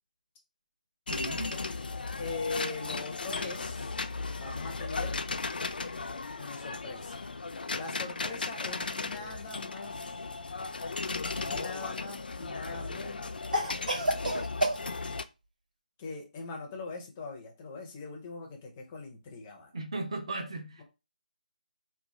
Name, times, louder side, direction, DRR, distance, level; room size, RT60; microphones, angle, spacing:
sound 1, 1.1-15.2, left 3 dB, 85° left, 0.4 m, -36 dB
voice 1, 1.1-1.5 19.7-20.8, right 2 dB, 40° right, 0.7 m, -36 dB
voice 2, 2.2-3.9 4.4-5.2 6.4-7.2 7.8-10.2 11.4-13.3 16.0-19.7, left 3 dB, 15° left, 0.5 m, -41 dB
Cough, 11.2-12.0 13.5-14.8, equal, 65° right, 1.4 m, -30 dB
3.0 x 2.3 x 3.6 m
hypercardioid pair, 175°, 5 cm